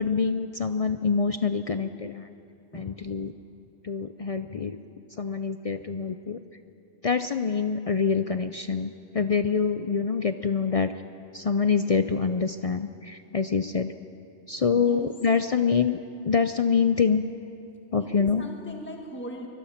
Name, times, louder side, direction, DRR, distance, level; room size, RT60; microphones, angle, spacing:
voice 1, 0.0-2.3 2.7-3.3 3.8-4.8 5.2-6.4 7.0-10.9 11.3-13.9 14.5-16.0 16.2-17.2 17.9-18.4, left 5 dB, 60° left, 9 dB, 0.3 m, -25 dB
voice 2, 14.7-15.1 18.0-19.5, equal, 10° left, 1 dB, 1.6 m, -40 dB
24.5 x 20.5 x 5.8 m, 2.7 s
omnidirectional pair, 1.3 m